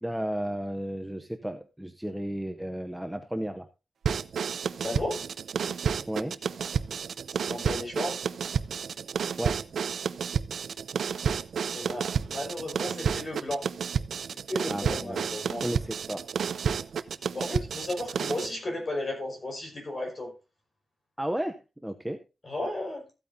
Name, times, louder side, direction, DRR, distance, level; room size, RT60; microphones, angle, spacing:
voice 1, 0.0-3.7 6.1-6.4 9.4-9.6 14.7-15.2 15.6-16.2 21.2-21.5 21.8-22.2, right 1 dB, 5° right, 6 dB, 0.7 m, -33 dB
sound 1, 4.0-18.5, right 7 dB, 90° right, 0.5 m, -31 dB
voice 2, 4.8-5.2 7.3-8.2 11.7-13.6 14.5-15.7 17.3-20.3 22.4-23.0, left 1 dB, 35° left, 1 dB, 5.1 m, -34 dB
14.5 x 8.9 x 2.7 m, 0.29 s
wide cardioid pair, 175°, 0 cm